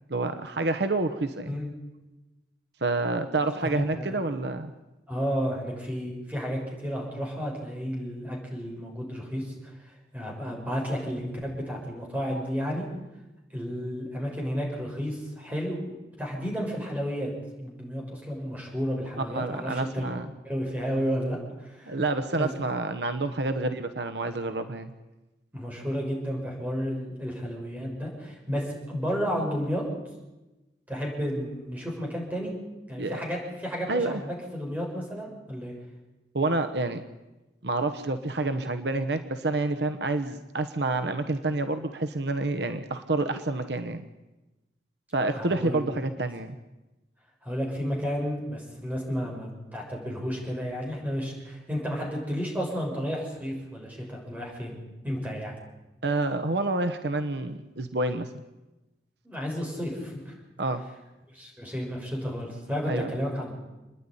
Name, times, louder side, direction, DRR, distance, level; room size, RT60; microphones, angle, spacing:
voice 1, 0.1-1.6 2.8-4.7 19.2-20.3 21.9-24.9 33.0-33.2 33.9-34.2 36.3-37.0 37.6-44.0 45.1-46.6 56.0-58.3 60.6-60.8 62.9-63.1, right 2 dB, 70° right, 9 dB, 1.1 m, -28 dB
voice 2, 3.5-4.2 5.1-12.9 13.5-17.3 17.6-20.1 20.4-22.0 22.3-22.5 25.5-29.8 30.9-32.6 32.9-35.7 45.3-45.8 47.4-54.8 55.0-55.5 59.2-60.3 61.3-63.5, equal, 10° right, -2 dB, 6.6 m, -32 dB
28.0 x 10.5 x 10.0 m, 1.1 s
head